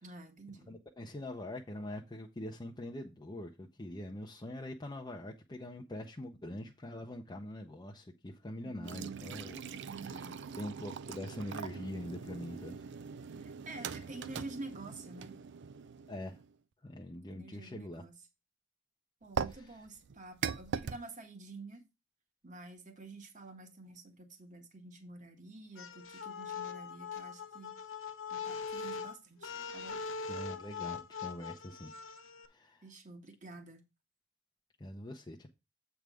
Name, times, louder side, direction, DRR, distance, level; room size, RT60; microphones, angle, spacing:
voice 1, 0.0-0.8 8.6-9.2 9.7-10.4 13.4-15.3 17.3-18.2 19.2-21.8 22.4-27.7 28.3-30.0 32.8-33.8, right 2 dB, 40° right, 1.6 m, -49 dB
voice 2, 0.7-9.6 10.1-10.3 10.6-12.8 16.1-16.4 16.8-18.0 19.4-19.8 30.3-31.9 32.5-32.8 34.8-35.5, left 1 dB, 20° left, 0.7 m, -44 dB
sound 1, 8.8-16.5 19.3-21.0, right 6 dB, 60° right, 0.4 m, -41 dB
sound 2, 25.8-32.5, left 5 dB, 70° left, 0.8 m, -41 dB
7.9 x 3.5 x 6.2 m
head